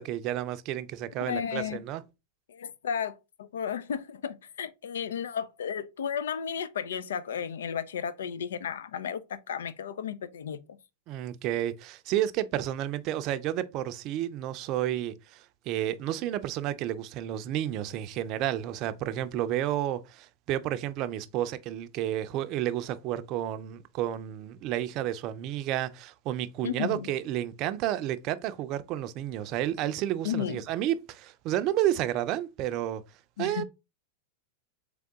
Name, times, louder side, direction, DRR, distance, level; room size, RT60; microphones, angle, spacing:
voice 1, 0.0-2.0 11.1-33.0 33.4-33.6, right 12 dB, 45° right, 0.5 m, -31 dB
voice 2, 1.3-1.8 2.5-10.6 26.6-27.1 30.2-30.6 33.4-33.6, left 8 dB, 85° left, 0.5 m, -33 dB
3.8 x 3.5 x 3.5 m
hypercardioid pair, 120°, 0 cm